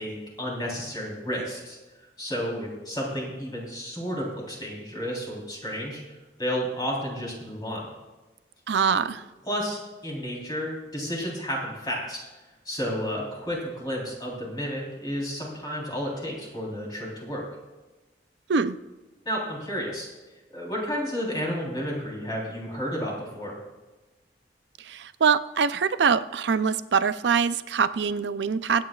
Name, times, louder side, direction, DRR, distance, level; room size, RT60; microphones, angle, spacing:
voice 1, 0.0-1.8 2.2-6.0 6.4-7.9 9.5-12.2 12.7-17.4 19.3-20.1 20.5-23.6, equal, 25° left, -3 dB, 3.7 m, -31 dB
voice 2, 8.7-9.3 18.5-18.8 24.8-28.8, right 6 dB, 80° right, 13 dB, 0.5 m, -24 dB
24.0 x 8.8 x 2.4 m, 1.2 s
head